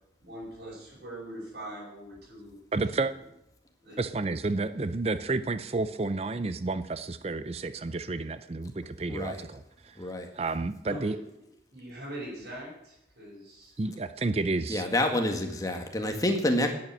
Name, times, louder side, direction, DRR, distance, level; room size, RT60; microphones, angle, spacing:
voice 1, 0.2-2.6 2.9-3.0 3.8-4.0 10.9-11.2 11.7-13.7, right 1 dB, 70° right, -6 dB, 5.8 m, -42 dB
voice 2, 2.7-3.1 4.0-10.0 10.3-11.2 13.8-14.8, right 3 dB, 35° right, 13 dB, 0.5 m, -31 dB
voice 3, 9.1-9.4 10.0-10.3 14.7-16.7, left 1 dB, 20° left, 4 dB, 1.7 m, -28 dB
11.0 x 8.7 x 9.0 m, 0.82 s
head